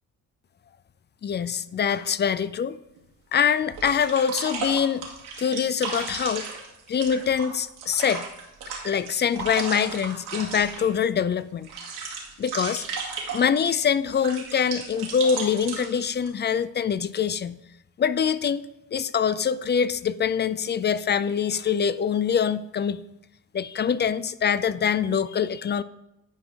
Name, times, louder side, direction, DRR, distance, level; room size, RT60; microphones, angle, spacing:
voice 1, 1.2-2.8 3.3-5.1 5.4-6.5 6.9-8.2 8.8-11.7 12.4-12.9 13.3-17.6 18.0-18.6 18.9-23.0 23.5-25.8, left 7 dB, 30° left, 16 dB, 0.4 m, -24 dB
sound 1, 3.0-3.1 3.7-11.0 11.4-13.7 14.1-16.3, right 5 dB, 85° right, 1.7 m, -34 dB
10.5 x 5.0 x 3.7 m, 0.88 s
supercardioid pair, 55°, 38 cm